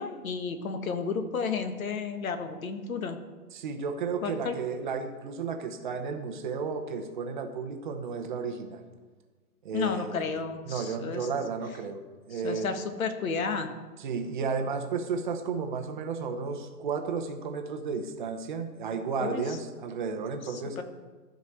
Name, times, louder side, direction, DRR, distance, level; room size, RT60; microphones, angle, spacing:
voice 1, 0.0-3.2 4.2-4.6 9.7-11.3 12.3-13.7 19.2-19.6 20.4-20.8, left 5 dB, 60° left, 7 dB, 1.6 m, -32 dB
voice 2, 3.5-8.8 9.6-10.4 10.7-12.0 12.3-12.7 14.0-20.8, right 5 dB, 30° right, 5 dB, 0.9 m, -33 dB
14.0 x 5.1 x 6.2 m, 1.4 s
hypercardioid pair, 145°, 47 cm